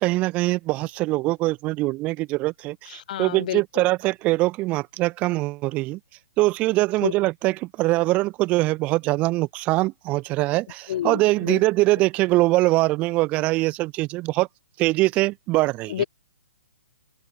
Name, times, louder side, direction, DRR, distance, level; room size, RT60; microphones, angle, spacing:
voice 1, 0.0-6.0 6.4-14.5 14.8-16.0, right 20 dB, 20° right, 0.8 m, -23 dB
voice 2, 2.9-3.8 7.0-7.1 10.9-11.6 15.9-16.0, left 11 dB, 40° left, 0.9 m, -29 dB
open air
figure-of-eight pair, 125°, 6 cm